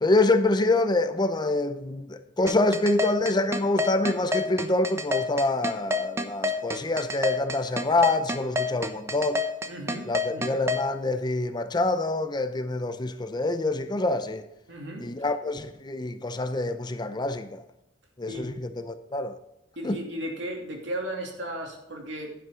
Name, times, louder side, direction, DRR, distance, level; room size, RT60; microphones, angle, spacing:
voice 1, 0.0-9.4 10.1-14.4 15.0-17.6 18.2-19.4 19.8-20.0, left 2 dB, 25° left, 0.6 m, -26 dB
sound 1, 2.5-10.8, left 2 dB, 15° right, 0.9 m, -27 dB
voice 2, 9.7-10.6 14.7-15.1 18.3-18.5 19.8-22.3, right 1 dB, 70° right, 2.9 m, -35 dB
11.0 x 10.5 x 3.8 m
head